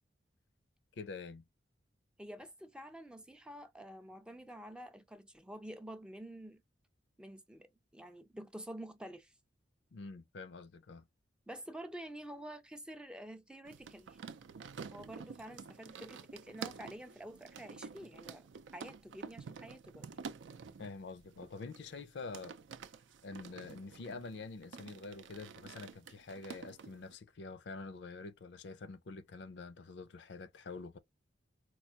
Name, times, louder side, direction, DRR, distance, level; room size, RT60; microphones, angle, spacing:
voice 1, 1.0-1.4 9.9-11.1 20.8-22.6 23.2-31.0, left 3 dB, 70° left, 0.5 m, -46 dB
voice 2, 2.2-6.6 7.2-9.3 11.5-14.2 14.9-18.5 18.7-20.3, right 1 dB, 5° right, 0.3 m, -49 dB
sound 1, 13.6-27.1, right 5 dB, 80° right, 0.4 m, -49 dB
4.5 x 2.3 x 2.7 m
head